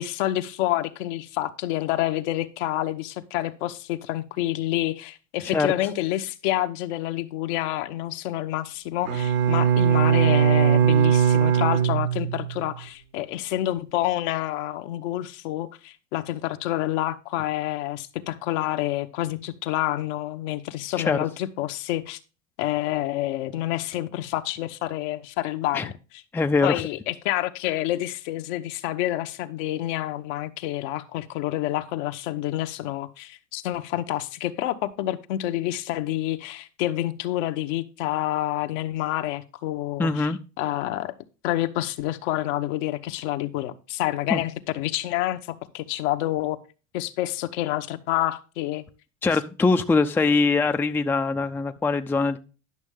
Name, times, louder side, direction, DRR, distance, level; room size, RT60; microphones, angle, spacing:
voice 1, 0.0-22.2 22.6-25.9 26.6-40.3 40.6-41.2 41.4-46.6 46.9-48.8, left 15 dB, 65° left, 1.1 m, -28 dB
Bowed string instrument, 9.1-12.6, right 9 dB, 80° right, 2.1 m, -20 dB
voice 2, 26.3-26.8 40.0-40.4 44.3-44.4 49.2-52.4, left 3 dB, 5° left, 0.5 m, -22 dB
11.0 x 6.3 x 3.6 m
hypercardioid pair, 95°, 40 cm